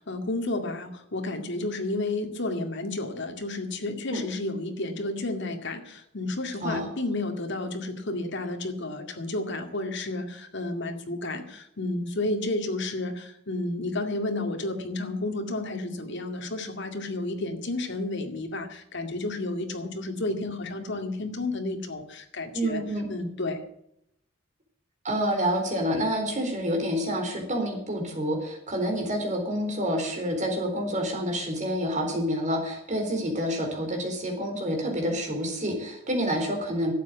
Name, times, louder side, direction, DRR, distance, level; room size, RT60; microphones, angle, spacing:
voice 1, 0.0-22.8 23.1-23.6, left 2 dB, 60° left, 5 dB, 2.1 m, -31 dB
voice 2, 22.5-23.1 25.0-36.9, equal, 35° right, 2 dB, 4.0 m, -28 dB
12.0 x 8.3 x 9.4 m, 0.76 s
head